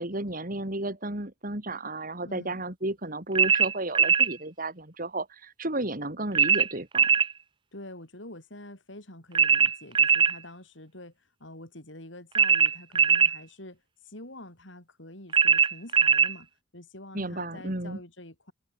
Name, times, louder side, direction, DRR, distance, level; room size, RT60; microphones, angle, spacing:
voice 1, 0.0-7.1 17.1-18.0, right 2 dB, 45° right, 3.4 m, -33 dB
voice 2, 2.2-2.6 7.7-18.5, left 1 dB, 65° left, 6.5 m, -46 dB
sound 1, 3.4-4.3 6.3-7.3 9.3-10.4 12.3-13.4 15.3-16.3, right 6 dB, 25° right, 0.5 m, -21 dB
open air
head